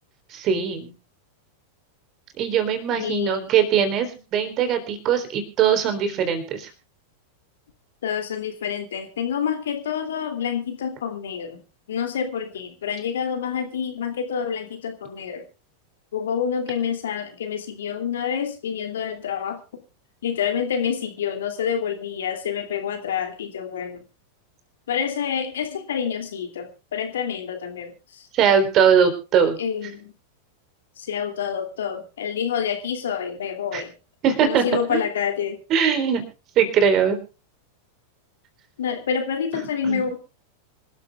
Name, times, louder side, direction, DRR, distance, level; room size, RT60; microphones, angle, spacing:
voice 1, 0.3-0.9 2.4-6.7 28.3-29.6 33.7-33.8 34.2-34.6 34.9-35.0 35.7-36.2 36.6-37.2 39.5-40.1, right 7 dB, 35° right, 8 dB, 3.9 m, -21 dB
voice 2, 2.9-3.5 8.0-11.6 11.9-15.4 16.1-19.6 20.2-24.0 24.9-28.3 29.6-30.1 31.0-33.9 34.4-35.6 38.8-40.2, left 7 dB, 60° left, 6 dB, 2.8 m, -27 dB
26.0 x 13.5 x 2.4 m, 0.32 s
figure-of-eight pair, 90°, 0 cm